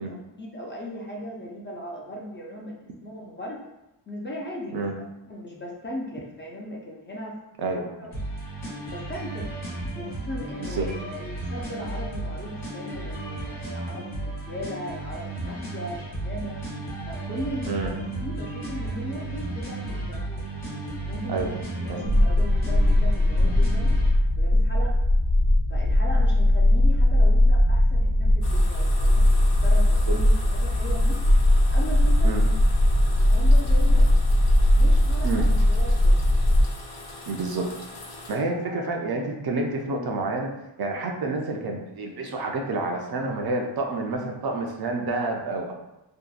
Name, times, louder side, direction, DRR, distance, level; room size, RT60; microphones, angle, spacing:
voice 1, 0.0-3.7 4.1-4.9 5.3-7.4 7.7-8.2 8.9-9.5 9.9-16.6 17.1-20.2 21.1-23.9 24.4-25.0 25.7-31.2 31.7-32.3 33.0-34.1 34.8-36.2 38.4-38.9, equal, 25° left, -3 dB, 0.4 m, -38 dB
sound 1, 8.1-24.1, right 2 dB, 90° left, 1.1 m, -34 dB
sound 2, 22.0-36.6, left 1 dB, 85° right, 0.8 m, -19 dB
sound 3, 28.4-38.4, left 2 dB, 65° left, 0.6 m, -41 dB
voice 2, 37.3-37.7 38.3-40.5 40.8-45.7, right 2 dB, 55° right, 2 dB, 0.5 m, -28 dB
2.7 x 2.1 x 2.3 m, 0.94 s
cardioid pair, 80°, 46 cm